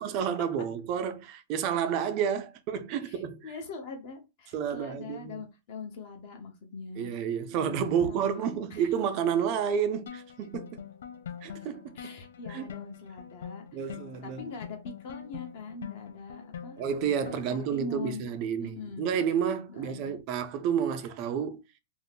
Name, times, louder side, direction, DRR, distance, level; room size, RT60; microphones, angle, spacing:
voice 1, 0.0-3.5 4.5-5.3 7.0-10.8 11.4-12.0 12.5-12.7 13.7-14.4 16.8-21.6, right 8 dB, 30° right, 0.3 m, -30 dB
voice 2, 3.0-7.1 7.5-8.9 11.9-13.9 14.2-16.8 17.2-18.3 18.6-19.3 19.7-20.2, left 4 dB, 35° left, 0.7 m, -42 dB
sound 1, 10.1-17.7, left 8 dB, 85° left, 0.4 m, -44 dB
2.6 x 2.4 x 3.4 m
supercardioid pair, 175°, 0 cm